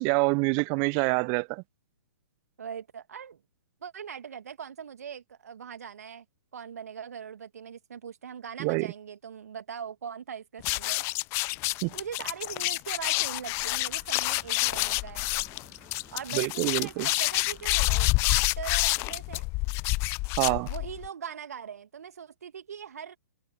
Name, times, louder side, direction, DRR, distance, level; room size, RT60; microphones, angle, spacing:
voice 1, 0.0-1.6 8.6-8.9 11.8-11.9 16.3-17.1 20.4-20.7, right 38 dB, 30° right, 0.7 m, -26 dB
voice 2, 2.6-3.4 3.8-6.2 6.5-11.0 11.9-15.3 16.1-19.4 20.6-23.2, right 7 dB, 65° right, 2.4 m, -41 dB
sound 1, 10.6-21.1, left 25 dB, 30° left, 0.6 m, -28 dB
sound 2, 13.2-18.3, right 7 dB, 15° right, 7.1 m, -56 dB
figure-of-eight pair, 120°, 9 cm